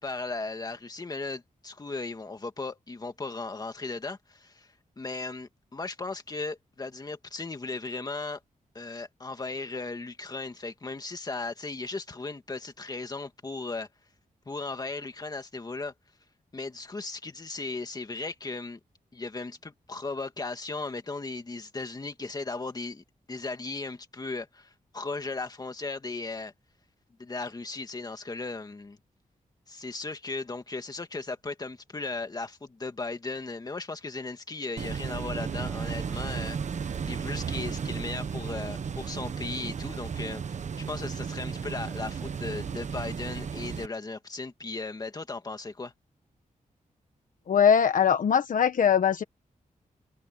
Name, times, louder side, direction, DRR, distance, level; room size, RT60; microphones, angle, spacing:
voice 1, 0.0-8.4 8.7-13.9 14.5-15.9 16.5-18.8 19.1-26.5 27.2-29.0 29.7-36.6 37.0-40.6 40.9-45.9, left 3 dB, 25° left, 2.4 m, -36 dB
sound 1, 34.8-43.9, right 6 dB, 55° right, 1.2 m, -34 dB
voice 2, 47.5-49.2, left 7 dB, 70° left, 1.2 m, -21 dB
wide cardioid pair, 140°, 14 cm